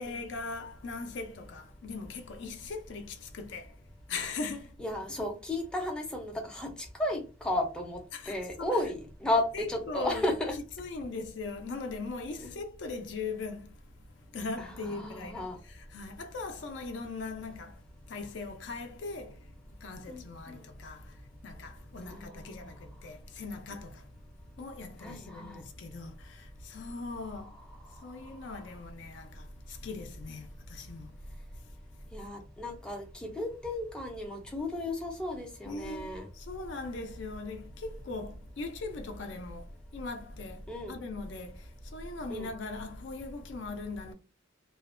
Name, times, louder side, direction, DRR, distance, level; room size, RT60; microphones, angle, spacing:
voice 1, 0.0-3.7 4.1-4.7 5.1-5.2 8.1-8.8 9.5-10.3 10.8-13.7 14.3-19.4 19.8-24.1 24.6-27.5 28.0-31.2 35.6-44.1, left 3 dB, 65° left, 0.4 m, -40 dB
voice 2, 4.8-6.7 7.0-8.0 8.3-10.5 12.4-12.6 14.6-15.6 20.1-20.6 22.0-22.6 25.0-25.6 32.1-36.3 40.7-40.9 42.3-42.5, left 1 dB, 5° left, 0.4 m, -34 dB
2.4 x 2.1 x 2.4 m
head